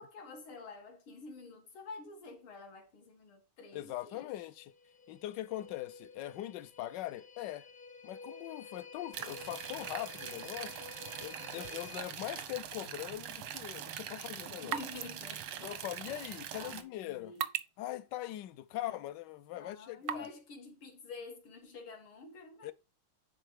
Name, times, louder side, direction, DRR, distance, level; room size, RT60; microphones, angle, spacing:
voice 1, 0.0-4.5 14.1-15.7 16.1-17.5 18.7-19.1 19.5-22.7, left 3 dB, 85° left, 2.7 m, -49 dB
voice 2, 3.7-4.7 5.1-7.7 8.0-10.8 11.2-14.8 15.6-17.3 17.8-20.3 22.6-22.7, left 14 dB, 70° left, 1.1 m, -41 dB
sound 1, 4.5-12.0, left 5 dB, 40° left, 0.8 m, -51 dB
sound 2, 9.1-16.8, right 10 dB, 90° right, 1.8 m, -43 dB
sound 3, 13.6-20.4, right 10 dB, 70° right, 0.9 m, -44 dB
10.0 x 4.1 x 4.7 m
omnidirectional pair, 2.3 m